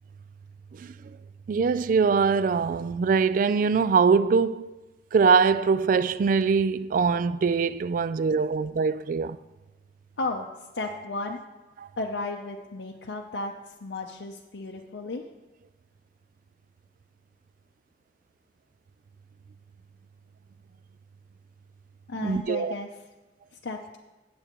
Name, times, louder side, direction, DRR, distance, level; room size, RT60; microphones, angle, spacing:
voice 1, 1.5-4.8 5.1-9.4 11.8-11.9 22.2-22.7, right 5 dB, 50° right, 0.3 m, -23 dB
voice 2, 10.2-10.5 10.7-11.4 12.0-15.2 22.1-22.9 23.6-24.0, left 3 dB, 85° left, 0.6 m, -34 dB
16.0 x 7.7 x 3.0 m
head